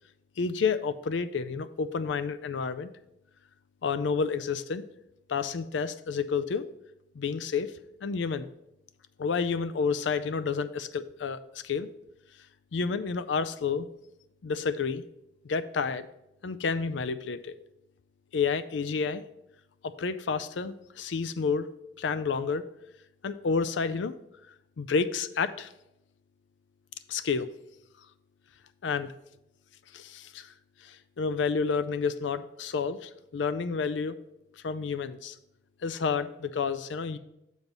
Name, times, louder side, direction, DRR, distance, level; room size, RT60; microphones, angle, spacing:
voice 1, 0.4-2.9 3.8-4.8 5.3-6.6 7.1-7.7 8.0-8.5 9.2-11.9 12.7-13.9 14.4-15.0 15.4-16.1 16.4-17.5 18.3-19.2 19.8-21.7 22.0-22.7 23.2-24.1 24.8-25.7 27.1-27.5 28.8-29.1 29.9-30.5 30.8-34.2 34.6-35.4 35.8-37.2, left 5 dB, 75° left, 12 dB, 0.4 m, -30 dB
7.1 x 4.0 x 5.9 m, 0.86 s
head